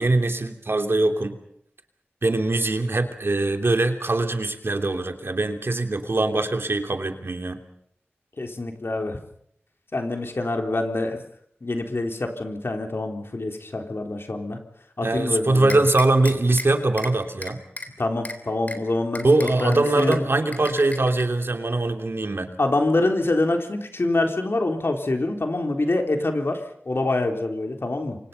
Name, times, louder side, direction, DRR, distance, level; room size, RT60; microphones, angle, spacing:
voice 1, 0.0-1.4 2.2-7.6 15.0-17.6 19.2-22.5, right 2 dB, 65° right, 6 dB, 2.9 m, -22 dB
voice 2, 8.4-9.2 9.9-11.2 11.6-14.6 15.0-15.8 18.0-19.3 19.6-20.2 22.6-26.6 26.9-28.2, left 2 dB, 65° left, 4 dB, 3.8 m, -25 dB
sound 1, 15.7-16.7 17.0-17.1 17.4-17.9 18.3-18.4 18.7-18.8 19.2-20.2 20.5-21.2, left 1 dB, 40° left, 3.4 m, -34 dB
29.0 x 24.5 x 5.6 m, 0.70 s
wide cardioid pair, 55°, 4 cm